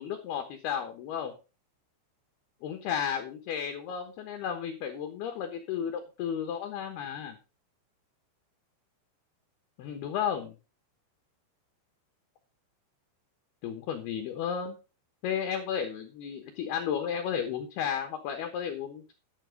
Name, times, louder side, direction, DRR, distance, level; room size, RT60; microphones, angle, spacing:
voice 1, 0.0-1.3 2.6-7.4 9.8-10.6 13.6-14.8 15.2-19.1, left 8 dB, 70° left, 6 dB, 2.6 m, -33 dB
12.0 x 6.7 x 5.0 m, 0.31 s
omnidirectional pair, 6.0 m